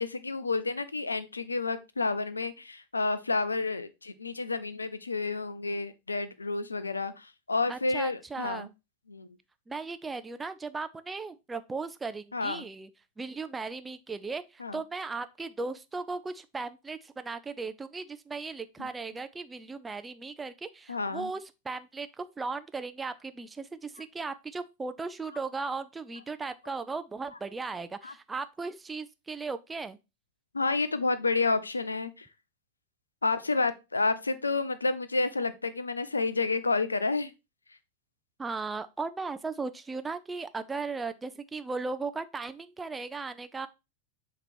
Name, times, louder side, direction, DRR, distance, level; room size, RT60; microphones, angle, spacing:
voice 1, 0.0-8.7 9.1-9.3 12.3-12.7 14.6-14.8 18.8-18.9 20.9-21.3 28.0-28.1 30.5-32.3 33.2-37.3, left 3 dB, 80° left, 0.5 m, -30 dB
voice 2, 7.7-8.7 9.7-12.9 13.2-30.0 38.4-43.7, right 4 dB, 10° right, 0.5 m, -37 dB
7.5 x 3.0 x 4.3 m
figure-of-eight pair, 90°, 0 cm